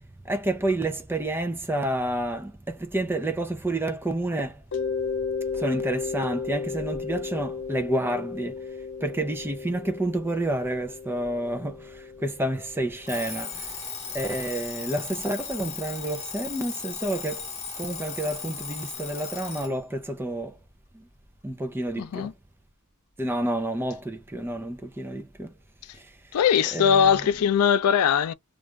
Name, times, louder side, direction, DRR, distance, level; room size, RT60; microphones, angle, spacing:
voice 1, 0.2-4.6 5.5-8.6 9.0-13.7 14.1-17.5 17.8-20.6 20.9-21.1 21.4-22.3 23.2-25.5 26.0-26.1 26.7-27.3, right 1 dB, 10° right, 0.5 m, -29 dB
Mallet percussion, 4.7-13.3, left 5 dB, 55° left, 0.7 m, -34 dB
Alarm, 13.1-19.8, left 6 dB, 30° left, 1.2 m, -36 dB
voice 2, 22.0-22.3 26.3-28.3, left 8 dB, 85° left, 0.3 m, -21 dB
2.5 x 2.4 x 3.1 m
head